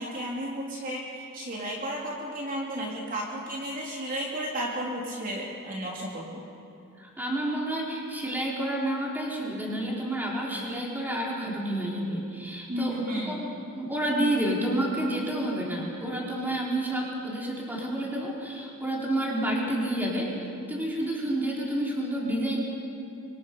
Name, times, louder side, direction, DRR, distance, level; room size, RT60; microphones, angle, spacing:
voice 1, 0.0-6.4 12.7-13.5, equal, 40° right, -3 dB, 3.3 m, -33 dB
voice 2, 7.0-13.0 13.3-13.5 13.8-20.3 20.7-22.6, right 1 dB, 10° right, -4 dB, 4.2 m, -29 dB
26.5 x 25.0 x 5.5 m, 2.6 s
head